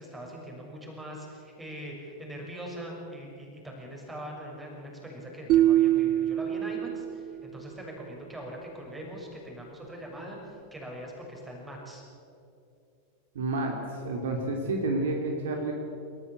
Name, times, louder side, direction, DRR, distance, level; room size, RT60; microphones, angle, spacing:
voice 1, 0.0-12.0, right 1 dB, 10° right, 0 dB, 6.3 m, -42 dB
sound 1, 5.5-7.7, right 13 dB, 40° right, 0.4 m, -24 dB
voice 2, 13.3-13.7 14.0-15.7, right 2 dB, 60° right, 2 dB, 2.9 m, -29 dB
27.5 x 14.0 x 8.3 m, 2.7 s
figure-of-eight pair, 90°, 0 cm